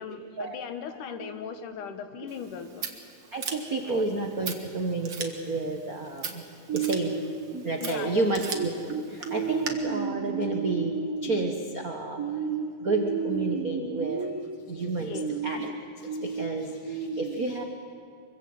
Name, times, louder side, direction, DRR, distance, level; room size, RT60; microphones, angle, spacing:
voice 1, 0.0-2.9 3.8-4.0 7.8-8.2 15.0-15.3, left 6 dB, 70° left, 8 dB, 2.8 m, -38 dB
Scissors, 2.3-9.7, right 5 dB, 45° right, 1.8 m, -40 dB
voice 2, 3.3-6.4 6.7-17.6, right 3 dB, 75° right, 3 dB, 0.8 m, -29 dB
24.5 x 23.5 x 7.9 m, 2.3 s
omnidirectional pair, 3.9 m